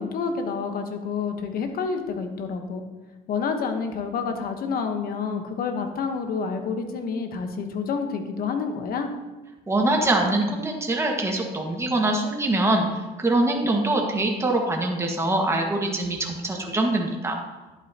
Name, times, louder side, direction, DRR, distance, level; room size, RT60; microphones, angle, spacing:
voice 1, 0.0-2.8 3.3-9.1, left 5 dB, 60° left, 6 dB, 1.2 m, -28 dB
voice 2, 9.7-12.9 13.2-17.3, right 2 dB, 15° right, 0 dB, 1.7 m, -23 dB
11.0 x 8.6 x 2.9 m, 1.2 s
cardioid pair, 110°, 17 cm